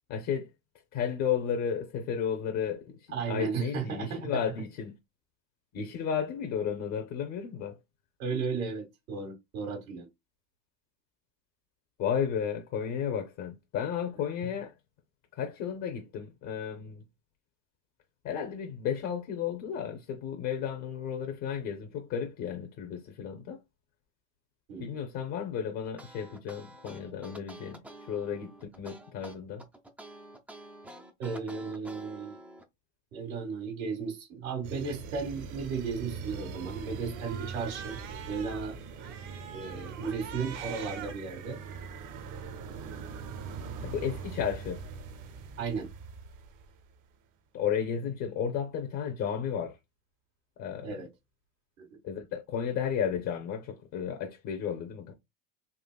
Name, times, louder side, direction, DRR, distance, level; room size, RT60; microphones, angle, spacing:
voice 1, 0.1-0.5 0.9-4.9 5.7-7.8 12.0-14.7 15.3-17.0 18.2-23.6 24.8-27.8 28.1-29.6 43.8-44.8 47.5-49.8 50.6-51.0 52.0-55.1, left 7 dB, 45° left, 0.7 m, -33 dB
voice 2, 3.1-4.3 8.2-10.1 24.7-25.0 31.2-32.4 33.1-38.0 38.3-38.8 39.5-41.6 45.6-45.9 50.8-51.1 51.8-51.9, right 5 dB, 90° right, 1.7 m, -35 dB
sound 1, 25.8-32.6, right 1 dB, 5° right, 0.3 m, -49 dB
sound 2, 34.6-47.0, right 5 dB, 50° right, 0.8 m, -42 dB
Cat, 36.3-38.6 39.0-41.1, right 8 dB, 65° right, 1.0 m, -45 dB
3.9 x 2.4 x 2.2 m
hypercardioid pair, 100°, 39 cm